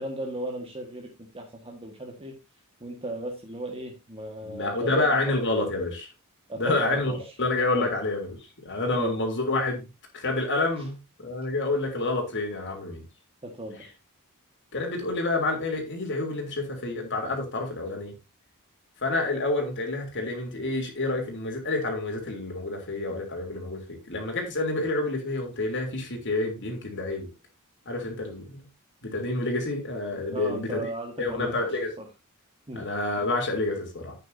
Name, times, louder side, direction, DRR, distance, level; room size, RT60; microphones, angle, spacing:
voice 1, 0.0-2.4 2.8-5.3 6.5-7.3 7.7-7.9 8.9-9.1 10.8-10.9 13.4-13.9 30.3-31.7 32.0-32.1 32.7-32.9, right 1 dB, 25° right, 1.6 m, -36 dB
voice 2, 4.4-6.1 6.6-7.1 7.4-9.9 10.1-13.0 14.7-18.1 19.0-27.3 27.8-28.6 29.0-30.9 31.2-31.9 32.7-34.1, left 2 dB, 55° left, 3.2 m, -28 dB
10.5 x 9.1 x 2.7 m
head